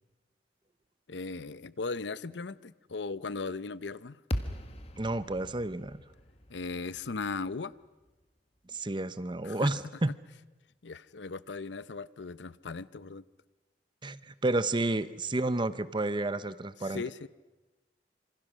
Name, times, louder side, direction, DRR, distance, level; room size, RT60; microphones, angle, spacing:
voice 1, 1.1-4.2 6.5-7.7 9.4-9.7 10.8-13.3 16.8-17.3, left 4 dB, 90° left, 0.7 m, -37 dB
sound 1, 4.3-8.6, equal, 35° left, 1.6 m, -40 dB
voice 2, 5.0-6.0 8.7-10.1 14.0-17.0, right 2 dB, 25° right, 0.8 m, -31 dB
27.0 x 26.0 x 6.3 m
head